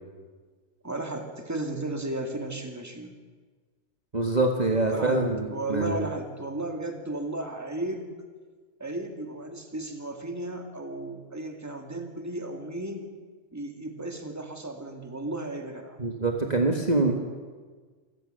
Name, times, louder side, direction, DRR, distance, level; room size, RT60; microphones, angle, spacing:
voice 1, 0.8-3.2 4.9-8.3 8.8-13.1 13.5-16.0, right 2 dB, 15° right, 4 dB, 2.1 m, -34 dB
voice 2, 4.1-6.1 16.0-17.1, right 2 dB, 35° right, 2 dB, 1.8 m, -25 dB
26.5 x 16.5 x 6.7 m, 1.5 s
omnidirectional pair, 1.3 m